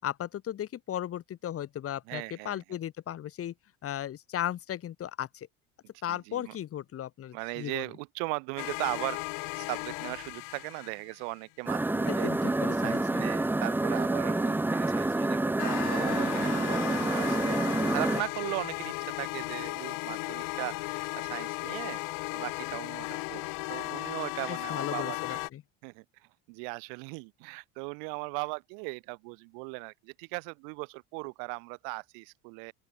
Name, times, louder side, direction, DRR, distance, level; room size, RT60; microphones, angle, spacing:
voice 1, 0.0-3.5 3.8-5.5 6.0-7.8 12.1-13.2 24.5-25.6, left 11 dB, 45° left, 5.9 m, -36 dB
voice 2, 2.1-2.6 6.1-6.6 7.3-9.2 9.5-12.5 12.8-22.0 22.3-25.4 25.8-32.7, right 40 dB or more, 80° right, 6.6 m, -38 dB
sound 1, 8.6-11.3 15.6-25.5, left 30 dB, 70° left, 1.2 m, -36 dB
sound 2, 11.7-18.2, right 2 dB, 5° right, 0.9 m, -28 dB
open air
supercardioid pair, 120°, 33 cm